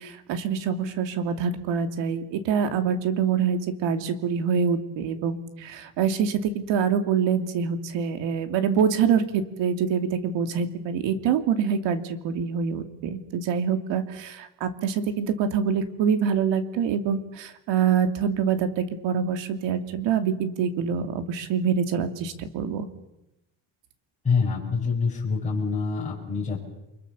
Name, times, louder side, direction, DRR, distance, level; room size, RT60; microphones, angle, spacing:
voice 1, 0.0-22.9, right 7 dB, 70° right, 8 dB, 2.8 m, -25 dB
voice 2, 24.2-26.6, left 5 dB, 15° left, -6 dB, 6.3 m, -26 dB
30.0 x 24.0 x 7.0 m, 0.90 s
cardioid pair, 165°, 45 cm